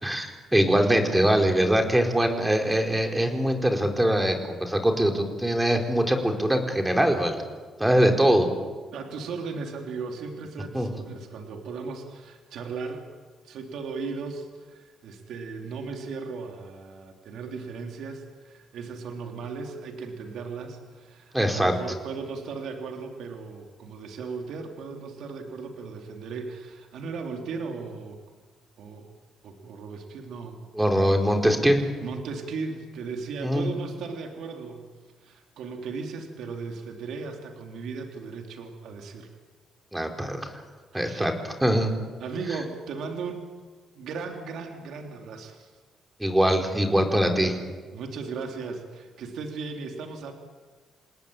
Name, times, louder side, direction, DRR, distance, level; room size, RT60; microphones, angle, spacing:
voice 1, 0.0-7.4 7.8-8.5 10.7-10.9 21.3-21.7 30.7-31.8 33.4-33.7 39.9-40.4 40.9-41.9 46.2-47.6, right 1 dB, 10° right, 4 dB, 4.3 m, -22 dB
voice 2, 8.9-13.0 13.4-28.2 28.8-29.1 29.4-30.6 32.0-34.9 35.2-39.3 40.9-41.3 42.2-43.4 44.0-45.7 47.9-50.3, right 4 dB, 75° right, 3 dB, 3.5 m, -37 dB
29.0 x 18.5 x 9.0 m, 1.4 s
cardioid pair, 90°, 0 cm